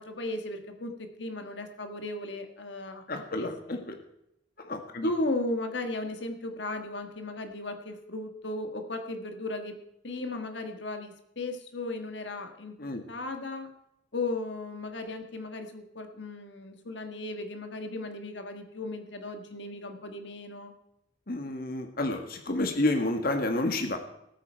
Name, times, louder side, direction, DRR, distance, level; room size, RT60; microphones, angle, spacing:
voice 1, 0.0-3.0 3.3-3.8 5.0-12.7 13.1-13.7 14.1-20.7, left 2 dB, 70° left, 6 dB, 1.6 m, -36 dB
voice 2, 3.1-4.0 4.6-5.1 12.8-13.0 21.3-24.0, left 2 dB, 50° left, 5 dB, 1.6 m, -30 dB
19.5 x 8.9 x 4.5 m, 0.82 s
head